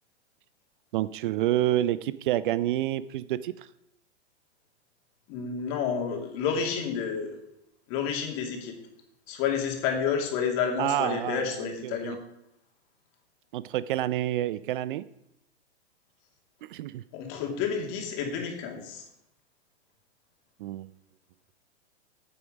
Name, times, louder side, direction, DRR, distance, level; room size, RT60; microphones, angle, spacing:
voice 1, 0.9-3.7 10.8-12.2 13.5-15.1 16.6-17.0 20.6-20.9, right 13 dB, 50° right, 16 dB, 0.5 m, -28 dB
voice 2, 5.3-7.3 7.9-8.7 9.3-12.2 17.1-19.0, left 7 dB, 40° left, 2 dB, 2.6 m, -30 dB
9.2 x 8.6 x 5.1 m, 0.81 s
hypercardioid pair, 120°, 34 cm